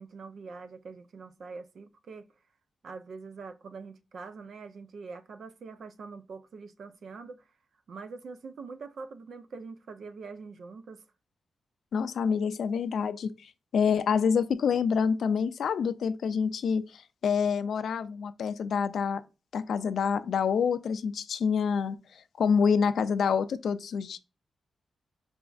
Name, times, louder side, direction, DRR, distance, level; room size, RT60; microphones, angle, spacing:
voice 1, 0.0-2.3 2.8-7.5 7.9-11.0, right 4 dB, 60° right, 0.4 m, -44 dB
voice 2, 11.9-19.2 19.5-24.2, left 6 dB, 70° left, 0.4 m, -27 dB
5.1 x 3.4 x 2.3 m
wide cardioid pair, 145°, 0 cm